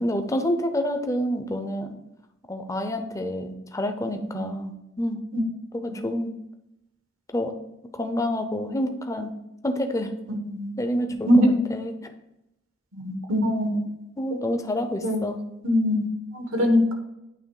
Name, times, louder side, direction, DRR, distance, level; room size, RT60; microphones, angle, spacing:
voice 1, 0.0-2.0 2.5-5.2 5.7-6.4 7.3-7.6 7.9-9.3 9.6-10.2 10.8-11.3 11.7-12.0 14.2-15.4, left 1 dB, 15° left, 6 dB, 0.5 m, -28 dB
voice 2, 12.9-13.8 14.3-14.4 15.0-15.3 15.6-16.9, equal, 80° right, 4 dB, 1.2 m, -22 dB
8.9 x 3.1 x 4.7 m, 0.89 s
head